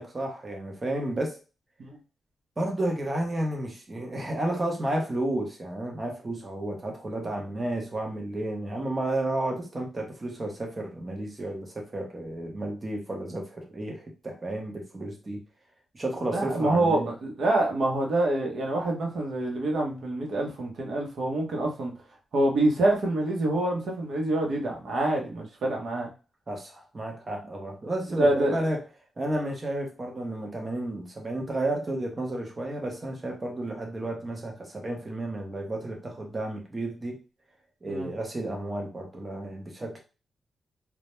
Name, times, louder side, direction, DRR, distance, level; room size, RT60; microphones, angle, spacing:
voice 1, 0.0-1.4 2.6-15.4 15.9-17.1 26.5-28.8 29.2-37.2 37.8-40.0, right 1 dB, 25° right, 1 dB, 0.7 m, -32 dB
voice 2, 16.3-21.9 22.3-26.1 28.2-28.6 37.9-38.1, right 1 dB, 65° right, 1 dB, 0.7 m, -26 dB
2.1 x 2.1 x 2.9 m, 0.32 s
wide cardioid pair, 140°, 0 cm